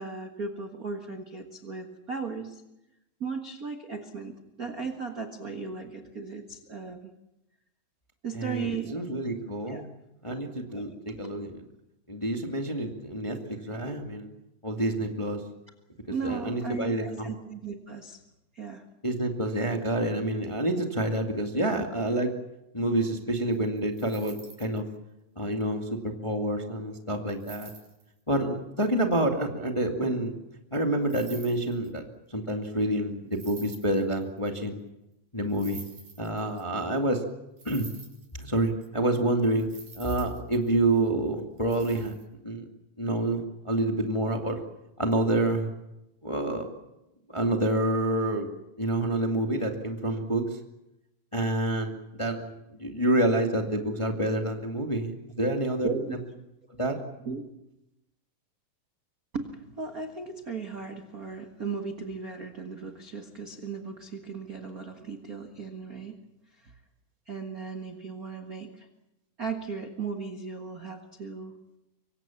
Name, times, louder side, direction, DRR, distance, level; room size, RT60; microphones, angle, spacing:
voice 1, 0.0-2.6 3.2-7.1 8.2-9.0 9.7-9.9 10.7-11.2 16.1-18.2 18.5-18.8 55.4-55.5 55.8-56.2 57.2-57.4 59.3-66.2 66.6-66.7 67.3-68.9 69.4-71.5, right 5 dB, 40° right, 5 dB, 1.3 m, -36 dB
voice 2, 8.3-9.8 10.2-11.6 12.1-14.3 14.6-15.4 16.2-17.3 19.0-22.3 22.7-24.8 25.3-27.7 28.3-30.3 30.7-32.0 32.3-34.8 35.3-35.8 36.2-37.2 37.6-37.9 38.4-42.1 42.4-42.6 43.0-43.4 43.6-44.6 45.0-45.7 46.2-46.7 47.3-48.5 48.8-50.6 51.3-55.9 56.8-57.0, right 1 dB, 10° left, 3 dB, 1.4 m, -28 dB
sound 1, 23.5-24.8 27.3-28.0 31.0-32.0 33.3-34.4 35.5-36.8 37.6-38.9 39.2-39.3 39.4-41.1 41.6-42.2, right 5 dB, 65° right, 5.7 m, -48 dB
25.5 x 24.0 x 7.2 m, 0.90 s
omnidirectional pair, 4.0 m